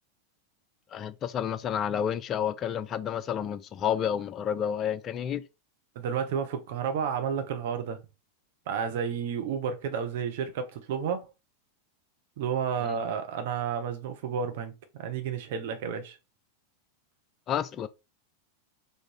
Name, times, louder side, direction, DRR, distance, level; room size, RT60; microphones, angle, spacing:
voice 1, 0.9-5.4 12.9-13.0 17.5-17.9, left 9 dB, 30° left, 0.4 m, -30 dB
voice 2, 5.9-8.0 8.7-11.3 12.4-14.7 15.0-16.2, right 7 dB, 50° right, 0.8 m, -31 dB
3.7 x 2.6 x 4.6 m
figure-of-eight pair, 90°, 0 cm